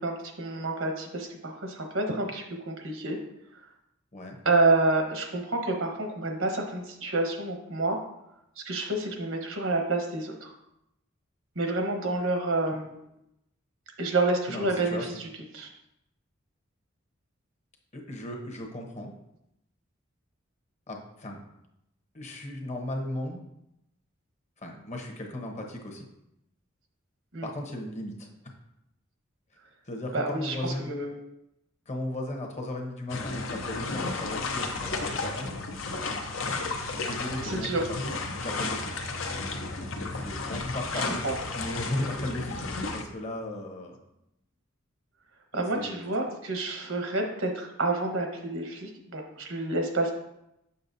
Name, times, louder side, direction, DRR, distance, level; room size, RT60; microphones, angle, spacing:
voice 1, 0.0-3.2 4.4-8.0 8.6-10.5 11.5-13.0 14.0-15.0 15.5-15.7 27.3-27.5 30.1-31.1 37.4-37.8 40.9-41.3 45.5-50.1, right 2 dB, 80° right, 3 dB, 1.2 m, -28 dB
voice 2, 14.5-15.1 17.9-19.1 20.9-21.4 22.1-23.4 24.6-26.1 27.4-28.3 29.8-30.9 31.9-35.6 36.7-39.0 40.1-41.2 41.5-44.0 45.5-46.0, left 1 dB, 35° left, 2 dB, 1.0 m, -36 dB
sound 1, 33.1-43.0, left 3 dB, 70° left, 0.8 m, -33 dB
6.8 x 6.4 x 2.7 m, 0.84 s
head